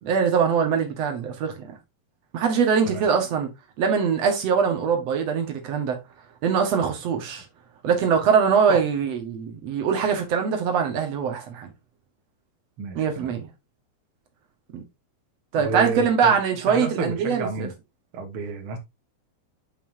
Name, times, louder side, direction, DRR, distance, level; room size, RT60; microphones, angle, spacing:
voice 1, 0.0-1.7 2.3-3.5 3.8-6.0 6.4-7.5 7.8-11.7 13.0-13.5 14.7-14.8 15.5-17.7, right 6 dB, 55° right, 2.1 m, -22 dB
voice 2, 12.8-13.3 15.6-16.3 16.7-17.7 18.1-18.8, right 3 dB, 70° right, 1.3 m, -30 dB
9.3 x 5.6 x 2.7 m
omnidirectional pair, 4.5 m